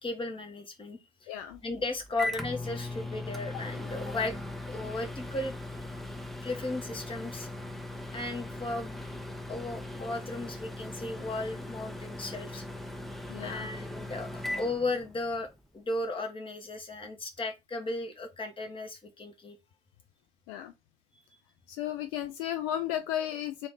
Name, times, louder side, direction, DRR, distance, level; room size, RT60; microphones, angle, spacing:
voice 1, 0.0-1.3 1.6-4.3 4.6-5.6 6.4-7.5 8.1-9.0 9.5-12.6 13.4-15.5 15.7-19.6, left 2 dB, 15° left, 1.0 m, -35 dB
voice 2, 1.3-1.6 13.3-13.7 20.5-20.7 21.7-23.7, left 11 dB, 55° left, 0.5 m, -34 dB
Microwave oven, 1.5-15.5, left 2 dB, ahead, 0.4 m, -39 dB
3.3 x 2.5 x 3.9 m
figure-of-eight pair, 70°, 32 cm